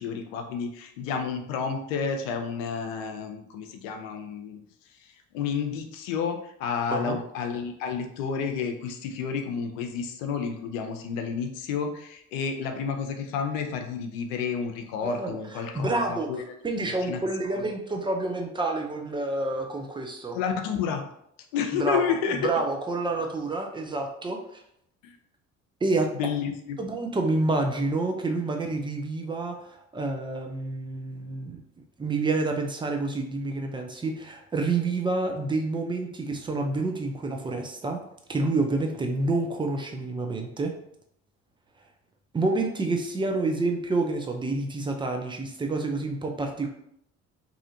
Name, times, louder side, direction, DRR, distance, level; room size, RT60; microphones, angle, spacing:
voice 1, 0.0-4.6 5.0-16.4 17.1-17.2 20.3-21.0 21.5-22.4 25.0-25.2 26.2-26.8, left 6 dB, 70° left, 6 dB, 0.5 m, -30 dB
voice 2, 15.0-20.4 21.7-24.6 25.8-26.1 26.8-31.6 32.0-38.0 38.3-40.7 42.3-46.7, right 2 dB, 10° right, 3 dB, 0.5 m, -28 dB
2.7 x 2.4 x 2.6 m, 0.73 s
figure-of-eight pair, 50°, 40 cm